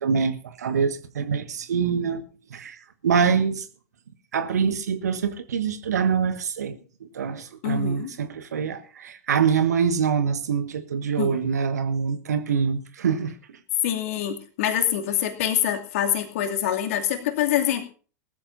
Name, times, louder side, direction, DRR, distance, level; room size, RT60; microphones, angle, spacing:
voice 1, 0.0-2.2 2.5-2.7 3.0-3.6 4.3-6.8 7.0-13.3, right 6 dB, 65° right, 1.6 m, -25 dB
voice 2, 7.6-8.1 11.2-11.4 13.8-17.8, left 11 dB, 50° left, 2.6 m, -25 dB
20.5 x 14.0 x 2.7 m
figure-of-eight pair, 95°, 9 cm